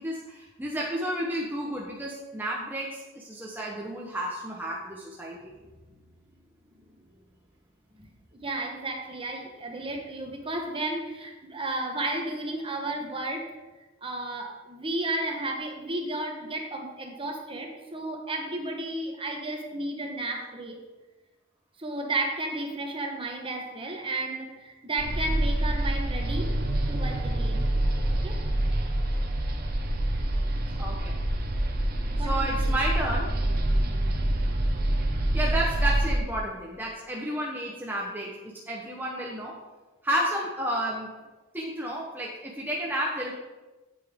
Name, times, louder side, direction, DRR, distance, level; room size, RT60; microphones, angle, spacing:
voice 1, 0.0-5.5 30.8-31.1 32.2-33.3 35.3-39.5 40.0-41.1 41.5-43.3, right 1 dB, 10° right, -3 dB, 0.9 m, -31 dB
voice 2, 7.9-13.5 14.0-20.8 21.8-26.5 26.9-27.6 28.2-28.4 32.2-32.8, right 2 dB, 25° right, 2 dB, 1.2 m, -33 dB
sound 1, 25.0-36.2, right 1 dB, 50° right, 1.0 m, -26 dB
8.3 x 8.2 x 3.6 m, 1.1 s
head